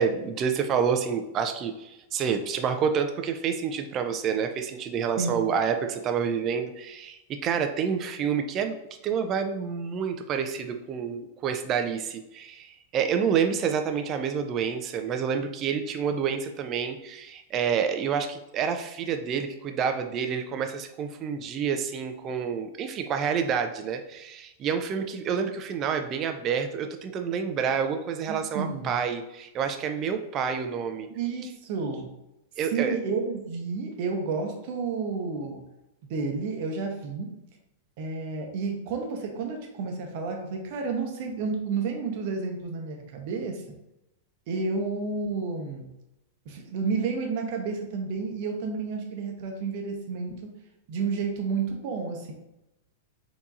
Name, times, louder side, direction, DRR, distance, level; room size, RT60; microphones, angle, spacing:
voice 1, 0.0-8.8 9.0-31.1 32.6-33.0, right 7 dB, 35° right, 6 dB, 0.4 m, -28 dB
voice 2, 28.3-29.0 31.1-32.1 32.7-35.6 36.1-37.3 38.0-43.8 44.5-45.9 46.5-50.5 50.9-52.3, right 4 dB, 50° right, 3 dB, 0.8 m, -31 dB
4.5 x 2.9 x 2.5 m, 0.89 s
figure-of-eight pair, 95°, 0 cm